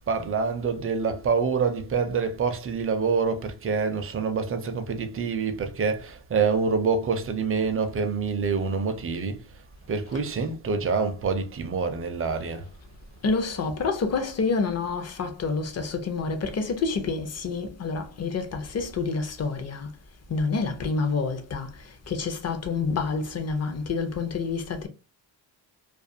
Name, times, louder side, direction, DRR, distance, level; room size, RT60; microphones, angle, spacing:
voice 1, 0.1-9.4 9.9-12.6, right 5 dB, 30° right, 0.5 m, -26 dB
voice 2, 13.2-19.9 20.3-24.9, left 4 dB, 35° left, 0.6 m, -28 dB
2.4 x 2.3 x 2.6 m
cardioid pair, 130°, 46 cm